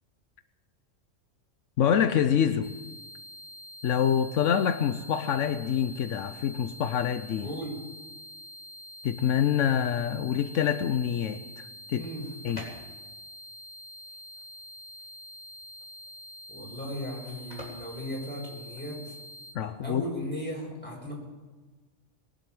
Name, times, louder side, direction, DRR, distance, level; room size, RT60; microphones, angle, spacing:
voice 1, 1.8-2.7 3.8-7.5 9.0-12.0 12.4-12.6 19.5-20.0, left 8 dB, 75° left, 10 dB, 1.0 m, -26 dB
sound 1, 2.6-19.5, equal, 30° right, 1.5 m, -46 dB
voice 2, 7.4-7.7 11.9-12.3 16.5-19.2 19.8-21.1, equal, 10° left, -3 dB, 6.0 m, -36 dB
sound 2, 12.1-19.0, left 1 dB, 30° left, 4.0 m, -49 dB
22.0 x 7.9 x 7.6 m, 1.3 s
omnidirectional pair, 1.3 m